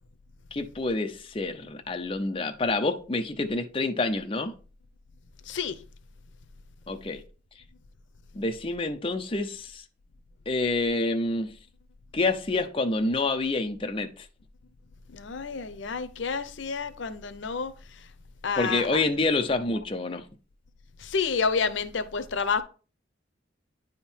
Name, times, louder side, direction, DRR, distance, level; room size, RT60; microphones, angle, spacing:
voice 1, 0.5-4.5 6.9-7.2 8.3-9.8 10.5-11.6 12.1-14.3 18.5-20.2, left 2 dB, 30° left, 0.6 m, -27 dB
voice 2, 5.5-5.8 15.1-18.1 18.4-19.0 21.0-22.6, left 5 dB, 85° left, 0.7 m, -29 dB
9.6 x 3.7 x 4.4 m
head